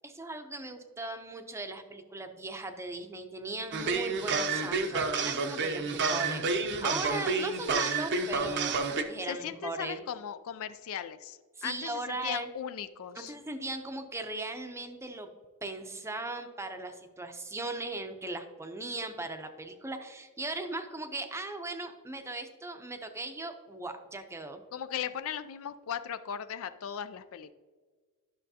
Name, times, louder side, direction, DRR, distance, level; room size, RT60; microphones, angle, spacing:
voice 1, 0.0-10.0 11.6-12.5 13.2-15.3 15.6-24.6, right 2 dB, 10° right, 6 dB, 0.6 m, -38 dB
sound 1, 3.7-9.0, right 4 dB, 50° right, 0.7 m, -29 dB
voice 2, 9.2-13.3 24.7-27.5, left 9 dB, 65° left, 12 dB, 0.4 m, -38 dB
11.5 x 6.3 x 2.8 m, 1.5 s
head